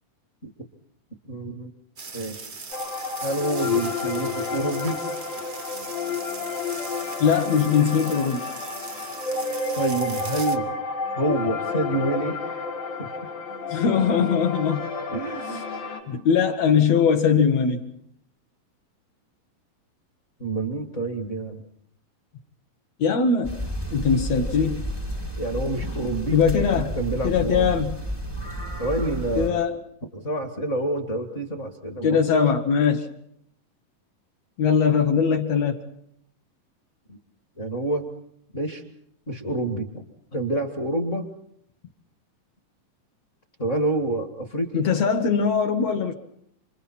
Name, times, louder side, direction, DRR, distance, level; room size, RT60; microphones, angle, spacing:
voice 1, 1.3-1.7 2.1-2.5 3.2-5.0 9.8-10.7 11.1-12.6 13.0-13.1 15.1-15.8 20.4-21.6 25.4-26.4 26.7-27.7 28.8-29.6 30.1-32.4 37.1-37.2 37.6-38.1 38.5-38.8 39.3-40.0 40.3-41.3 43.6-44.8, right 2 dB, 30° left, 5 dB, 1.6 m, -28 dB
sound 1, 2.0-10.6, right 4 dB, 90° right, 0.5 m, -39 dB
sound 2, 2.7-16.0, left 4 dB, 90° left, 5.3 m, -30 dB
voice 2, 7.2-8.4 13.7-14.9 16.1-17.8 23.0-23.5 23.9-24.9 26.3-26.9 27.2-28.0 29.4-29.7 32.0-33.1 34.6-35.8 44.7-46.1, left 6 dB, 60° left, 5 dB, 2.0 m, -21 dB
sound 3, 23.4-29.5, equal, 15° left, 1.0 m, -31 dB
28.5 x 26.5 x 4.3 m, 0.71 s
omnidirectional pair, 4.0 m